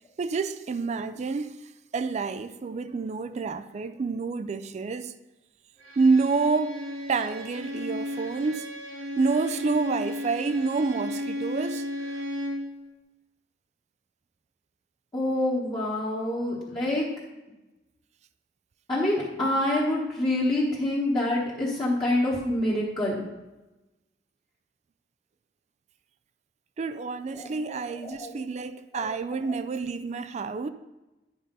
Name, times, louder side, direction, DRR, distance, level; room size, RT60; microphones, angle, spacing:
voice 1, 0.2-1.6 1.9-5.1 6.0-6.8 7.1-8.7 9.2-11.9 26.8-30.7, right 4 dB, 40° right, 0.3 m, -28 dB
Bowed string instrument, 5.8-12.7, left 1 dB, 80° right, 2.2 m, -34 dB
voice 2, 15.1-17.1 18.9-23.2 27.3-28.3 28.9-29.1 29.4-29.5, left 1 dB, 25° left, 1.3 m, -27 dB
9.8 x 4.9 x 4.0 m
head